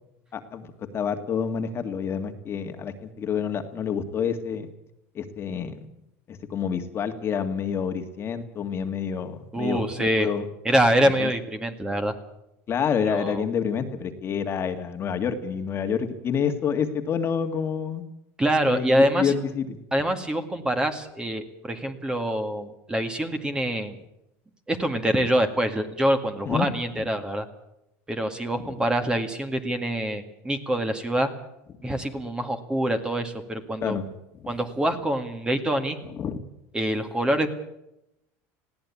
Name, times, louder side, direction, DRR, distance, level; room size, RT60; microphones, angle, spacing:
voice 1, 0.3-4.7 5.1-5.9 6.3-10.5 11.0-11.3 12.7-18.0 18.6-19.8 26.4-26.7 28.8-28.9 33.8-34.0 34.4-34.5 36.0-36.4, left 7 dB, 35° left, 7 dB, 1.9 m, -28 dB
voice 2, 9.5-10.3 10.7-12.2 13.0-13.4 18.4-19.3 19.9-24.0 24.7-27.5 28.1-31.3 31.8-34.0 34.5-36.0 36.7-37.5, right 1 dB, 10° right, 7 dB, 2.1 m, -25 dB
20.5 x 16.0 x 8.5 m, 0.84 s
supercardioid pair, 125°, 7 cm